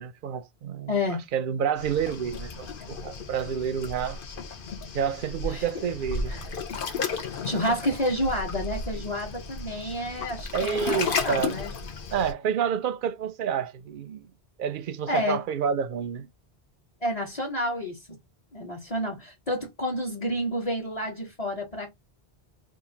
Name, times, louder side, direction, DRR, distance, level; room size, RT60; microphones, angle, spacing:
voice 1, 0.0-0.9 1.3-4.2 4.9-6.3 7.7-7.8 10.5-11.5 12.1-14.3 14.6-16.3, right 7 dB, 60° right, 0.6 m, -29 dB
voice 2, 0.9-1.2 5.5-5.6 6.3-6.5 7.4-11.7 15.1-15.4 17.0-18.0 18.5-21.9, left 1 dB, 35° left, 1.2 m, -29 dB
Waves surf, 1.8-12.3, left 4 dB, 60° left, 0.9 m, -34 dB
3.0 x 2.5 x 3.8 m
omnidirectional pair, 1.1 m